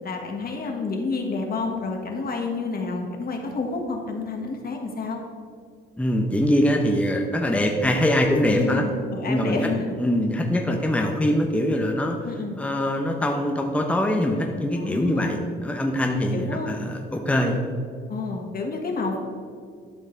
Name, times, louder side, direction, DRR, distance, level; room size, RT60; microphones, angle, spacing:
voice 1, 0.0-5.2 8.5-10.0 12.2-12.6 14.8-15.3 16.3-16.9 18.1-19.2, left 3 dB, 50° left, 2 dB, 1.6 m, -29 dB
voice 2, 6.0-8.8 9.3-9.6 10.0-12.2 12.6-17.6, left 1 dB, 5° left, 2 dB, 0.8 m, -23 dB
12.0 x 5.3 x 4.0 m, 2.1 s
cardioid pair, 90°, 20 cm